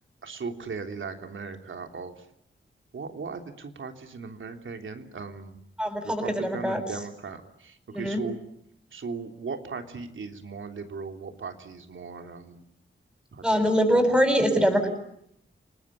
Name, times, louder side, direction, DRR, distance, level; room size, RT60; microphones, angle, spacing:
voice 1, 0.2-2.3 2.9-5.6 6.0-8.4 8.9-12.6 13.3-13.6 13.9-14.1, right 4 dB, 75° right, 5 dB, 3.4 m, -38 dB
voice 2, 5.8-6.8 7.9-8.2 13.4-14.9, equal, 5° right, 3 dB, 7.5 m, -23 dB
30.0 x 20.0 x 9.9 m, 0.74 s
cardioid pair, 70°, 20 cm